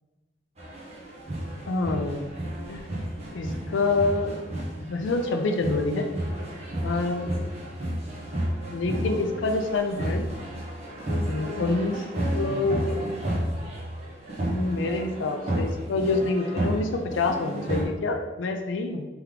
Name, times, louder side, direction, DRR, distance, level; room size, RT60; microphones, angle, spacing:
sound 1, 0.6-17.8, right 1 dB, 35° right, 1.0 m, -32 dB
voice 1, 1.6-2.3 2.7-2.8 3.3-4.4 4.9-6.1 6.8-7.3 8.7-10.2 11.3-12.0 12.3-13.0 14.4-19.1, left 3 dB, 85° left, 5 dB, 0.4 m, -27 dB
3.4 x 3.4 x 3.6 m, 1.2 s
head